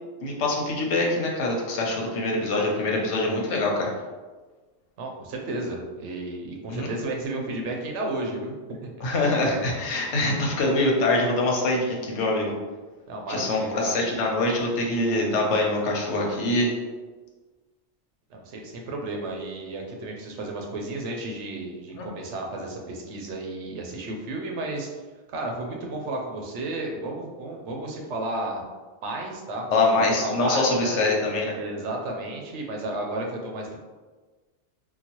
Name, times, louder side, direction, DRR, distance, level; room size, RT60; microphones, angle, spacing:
voice 1, 0.2-3.9 6.7-6.9 9.0-12.5 13.3-16.7 22.0-22.1 29.7-31.5, left 2 dB, 80° left, -1 dB, 1.0 m, -24 dB
voice 2, 5.0-8.9 13.1-14.0 18.3-24.9 25.3-28.6 29.0-31.0 31.5-33.8, right 2 dB, 85° right, 1 dB, 1.0 m, -33 dB
3.8 x 2.2 x 2.9 m, 1.3 s
omnidirectional pair, 1.2 m